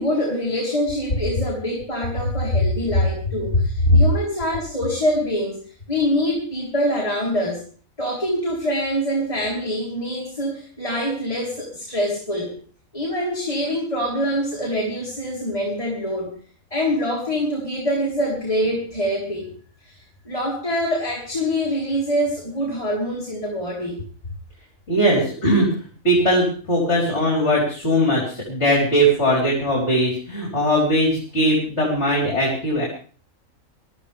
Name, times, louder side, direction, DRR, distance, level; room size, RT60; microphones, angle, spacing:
voice 1, 0.0-7.6 8.0-12.5 12.9-16.3 16.7-19.5 19.8-24.0, equal, 25° left, -3 dB, 3.8 m, -25 dB
voice 2, 24.9-25.7 26.0-32.9, equal, 50° left, -2 dB, 4.6 m, -19 dB
22.5 x 13.5 x 3.5 m, 0.43 s
omnidirectional pair, 1.4 m